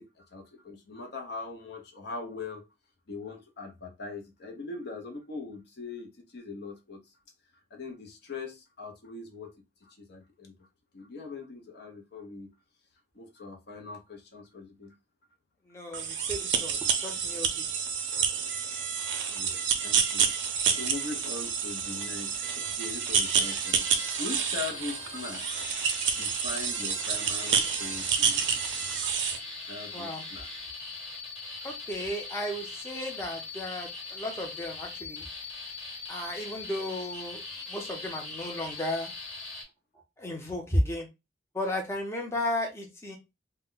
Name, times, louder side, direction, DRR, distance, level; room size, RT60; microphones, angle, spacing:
voice 1, 0.0-2.7 3.1-7.0 7.7-10.5 10.9-12.5 13.1-15.0 18.8-18.9 19.2-28.9 29.6-30.5, left 3 dB, 60° left, 0.6 m, -41 dB
voice 2, 15.7-17.7 29.9-30.2 31.6-35.2 36.1-37.4 37.7-39.1 40.2-41.1 41.5-43.2, left 1 dB, 15° left, 0.6 m, -34 dB
sound 1, 15.9-29.4, right 7 dB, 70° right, 0.5 m, -29 dB
sound 2, 23.1-39.6, left 3 dB, 35° left, 1.2 m, -41 dB
2.1 x 2.1 x 3.7 m
head